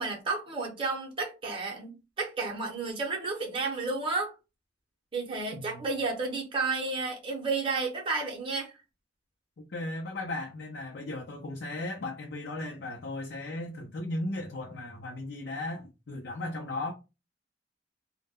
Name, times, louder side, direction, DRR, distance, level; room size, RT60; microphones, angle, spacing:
voice 1, 0.0-4.3 5.1-8.7, right 3 dB, 30° right, 0.7 m, -32 dB
voice 2, 5.5-5.8 9.6-16.9, left 2 dB, 65° left, 0.5 m, -36 dB
2.1 x 2.1 x 3.5 m
head